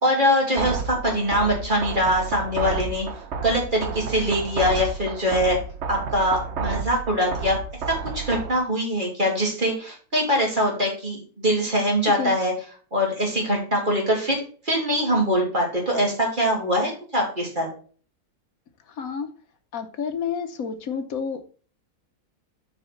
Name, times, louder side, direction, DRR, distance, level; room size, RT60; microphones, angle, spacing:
voice 1, 0.0-3.0 3.4-5.6 5.9-7.6 7.9-12.5 12.9-14.4 14.6-17.7, equal, 30° right, -2 dB, 2.9 m, -23 dB
sound 1, 0.6-8.6, right 5 dB, 50° right, 1.1 m, -31 dB
voice 2, 18.9-19.3 19.7-21.5, left 6 dB, 70° left, 7 dB, 1.2 m, -30 dB
6.6 x 4.8 x 5.7 m, 0.41 s
omnidirectional pair, 1.6 m